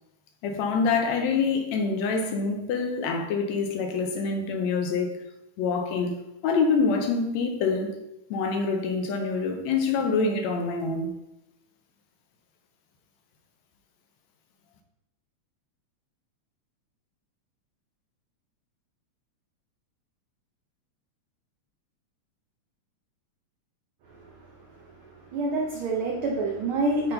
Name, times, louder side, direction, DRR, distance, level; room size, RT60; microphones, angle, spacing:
voice 1, 0.4-5.1 5.6-6.1 6.4-8.0 8.3-11.1, left 4 dB, 75° left, 1.9 m, -26 dB
voice 2, 25.2-27.1, right 2 dB, 85° right, 1.1 m, -27 dB
8.6 x 3.9 x 3.9 m
omnidirectional pair, 3.4 m